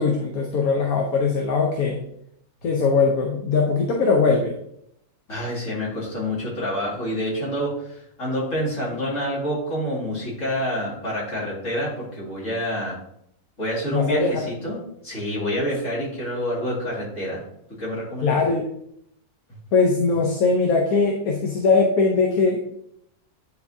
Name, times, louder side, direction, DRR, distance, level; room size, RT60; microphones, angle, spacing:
voice 1, 0.0-2.0 2.6-4.5 13.9-14.4 18.2-18.7 19.7-22.6, left 4 dB, 70° left, 1 dB, 1.3 m, -20 dB
voice 2, 5.3-13.0 13.6-17.4 17.8-18.5, equal, 55° left, -5 dB, 2.7 m, -27 dB
9.5 x 4.4 x 2.7 m, 0.74 s
omnidirectional pair, 1.6 m